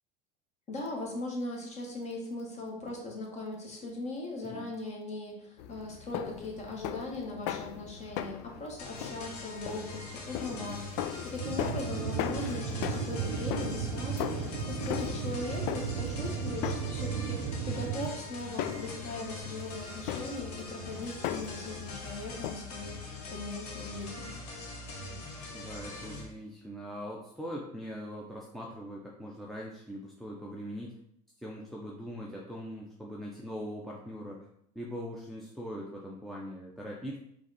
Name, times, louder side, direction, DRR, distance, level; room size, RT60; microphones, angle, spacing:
voice 1, 0.7-24.3, left 2 dB, 35° left, -1 dB, 1.5 m, -39 dB
sound 1, 5.6-22.5, left 11 dB, 65° left, 0.4 m, -39 dB
sound 2, 8.8-26.3, left 3 dB, 85° left, 1.0 m, -43 dB
sound 3, 11.4-18.1, right 7 dB, 60° right, 0.6 m, -35 dB
voice 2, 25.5-30.9 31.4-34.5 34.7-37.2, equal, ahead, -3 dB, 0.7 m, -41 dB
4.8 x 2.6 x 4.1 m, 0.73 s
hypercardioid pair, 90°, 20 cm